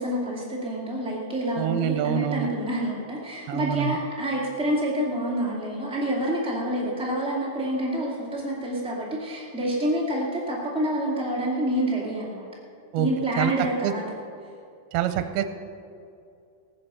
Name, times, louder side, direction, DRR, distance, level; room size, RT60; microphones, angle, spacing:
voice 1, 0.0-12.5 13.0-14.0, right 1 dB, 5° right, -5 dB, 0.6 m, -27 dB
voice 2, 1.6-2.5 3.5-4.0 12.9-13.1 13.4-13.5 13.8-13.9 14.9-15.4, right 11 dB, 85° right, 9 dB, 2.6 m, -26 dB
17.5 x 10.0 x 6.8 m, 2.5 s
omnidirectional pair, 4.5 m